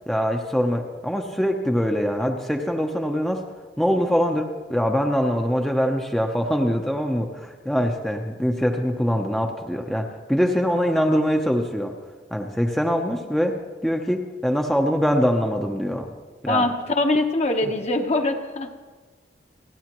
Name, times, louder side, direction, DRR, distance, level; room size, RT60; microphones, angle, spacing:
voice 1, 0.1-3.4 3.8-11.9 12.3-16.1 16.4-16.7, equal, ahead, 2 dB, 0.7 m, -23 dB
voice 2, 16.5-18.7, left 2 dB, 35° left, 5 dB, 1.0 m, -23 dB
30.0 x 10.5 x 3.0 m, 1.3 s
head